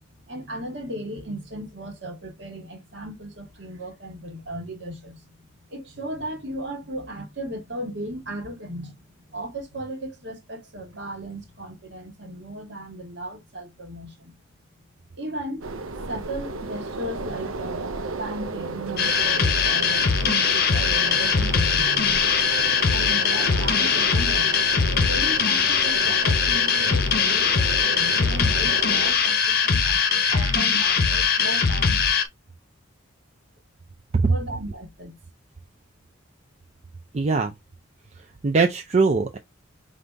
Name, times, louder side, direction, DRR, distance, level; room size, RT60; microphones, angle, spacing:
voice 1, 0.2-5.4 5.7-9.0 9.3-14.4 15.1-15.7 16.0-17.8 18.2-24.6 24.9-32.1 34.2-35.2, right 1 dB, 60° right, 1.6 m, -36 dB
sound 1, 15.6-29.1, right 3 dB, 90° right, 0.7 m, -34 dB
sound 2, 19.0-32.2, left 6 dB, 50° left, 0.7 m, -21 dB
voice 2, 37.1-37.5 38.4-39.4, right 4 dB, 35° right, 0.4 m, -21 dB
5.2 x 2.6 x 3.3 m
head